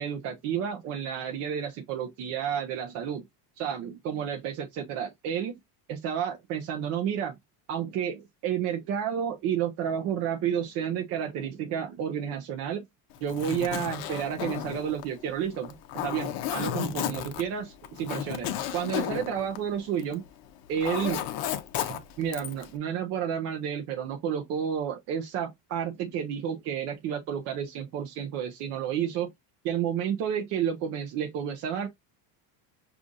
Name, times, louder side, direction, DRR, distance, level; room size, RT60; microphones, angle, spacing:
voice 1, 0.0-3.2 3.6-5.6 5.9-7.4 7.7-12.9 13.2-15.8 16.0-20.2 20.7-21.2 21.9-29.3 29.6-31.9, right 8 dB, 35° right, 0.4 m, -31 dB
Zipper (clothing), 13.2-20.3 20.6-22.7, left 11 dB, 50° left, 0.6 m, -33 dB
5.2 x 2.4 x 2.4 m
cardioid pair, 160°, 46 cm